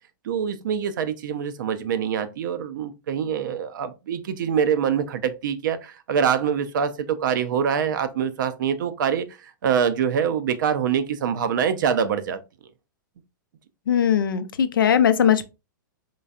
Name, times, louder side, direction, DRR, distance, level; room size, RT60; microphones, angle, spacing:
voice 1, 0.2-12.4, right 7 dB, 65° right, 0.6 m, -25 dB
voice 2, 13.9-15.5, left 8 dB, 80° left, 0.5 m, -19 dB
3.9 x 3.2 x 2.3 m
hypercardioid pair, 115°, 11 cm